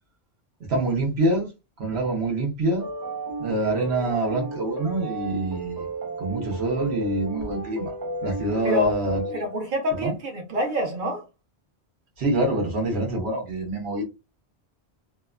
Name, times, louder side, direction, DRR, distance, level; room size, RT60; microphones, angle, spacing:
voice 1, 0.7-1.5 1.8-2.9 3.4-5.9 6.2-7.9 8.2-9.4 10.0-10.1 12.2-14.0, right 1 dB, 70° right, 1.1 m, -25 dB
sound 1, 2.8-9.7, right 3 dB, 30° right, 0.4 m, -34 dB
voice 2, 9.3-11.2, left 1 dB, 50° right, 0.9 m, -26 dB
2.8 x 2.2 x 2.3 m
omnidirectional pair, 1.1 m